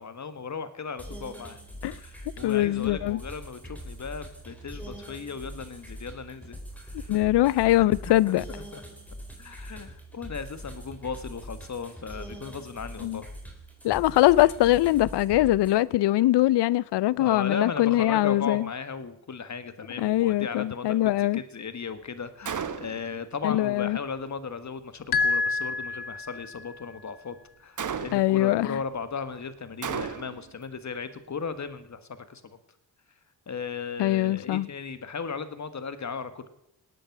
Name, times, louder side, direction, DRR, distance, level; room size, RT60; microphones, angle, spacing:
voice 1, 0.0-6.6 6.8-7.2 7.8-8.8 9.4-13.3 17.2-32.6 33.5-36.5, left 5 dB, 45° left, 1.6 m, -36 dB
sound 1, 1.0-15.8, equal, 5° left, 3.8 m, -42 dB
voice 2, 2.4-3.2 7.1-8.4 13.0-13.2 13.8-18.7 20.0-21.4 23.4-24.0 28.1-28.8 34.0-34.7, left 15 dB, 80° left, 0.6 m, -22 dB
Gunshot gunfire, 22.4-23.1 27.8-28.4 29.8-30.5, right 7 dB, 50° right, 1.1 m, -33 dB
sound 2, 25.1-26.7, left 4 dB, 65° left, 1.1 m, -27 dB
18.5 x 8.9 x 6.0 m
cardioid pair, 65°, 40 cm